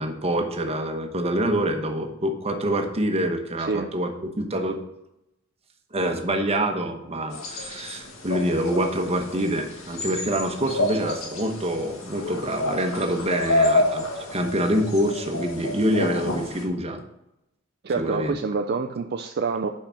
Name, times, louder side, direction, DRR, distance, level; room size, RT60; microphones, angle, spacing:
voice 1, 0.0-4.8 5.9-17.0 18.0-18.4, right 1 dB, 30° right, 5 dB, 1.0 m, -26 dB
sound 1, 7.3-16.7, left 2 dB, 75° left, 1.7 m, -29 dB
voice 2, 17.8-19.7, right 4 dB, 50° right, 5 dB, 0.4 m, -26 dB
5.8 x 5.7 x 6.9 m, 0.87 s
head